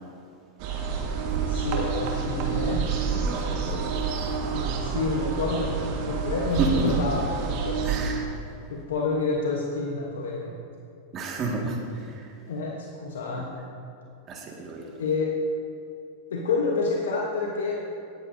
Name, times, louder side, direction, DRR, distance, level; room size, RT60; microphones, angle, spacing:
sound 1, 0.6-8.1, right 5 dB, 55° right, 1.6 m, -28 dB
voice 1, 1.5-2.9 4.4-7.8 8.7-10.6 12.0-12.1 12.5-13.5 15.0-15.4 16.3-17.8, left 3 dB, 80° left, -2 dB, 1.1 m, -28 dB
voice 2, 3.1-3.9 6.6-6.9 7.8-8.2 11.1-11.8 12.2-12.3 13.4-13.5 14.3-14.9, right 4 dB, 35° right, 0 dB, 1.9 m, -30 dB
17.5 x 8.3 x 2.7 m, 2.5 s
hypercardioid pair, 100°, 0 cm